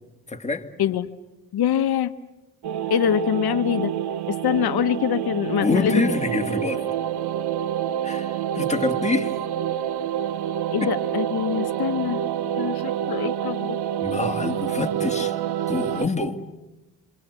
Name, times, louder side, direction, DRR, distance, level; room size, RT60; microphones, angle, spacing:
voice 1, 0.3-0.7 5.6-6.9 8.0-9.4 10.8-10.9 14.0-15.3 15.7-16.4, left 3 dB, 15° left, 2.2 m, -26 dB
voice 2, 0.8-1.1 1.5-2.1 2.9-3.9 4.3-6.0 10.7-12.2 12.6-13.8, left 9 dB, 75° left, 0.9 m, -24 dB
sound 1, 2.6-16.1, right 10 dB, 85° right, 0.9 m, -27 dB
27.5 x 25.5 x 8.2 m
cardioid pair, 75°, 38 cm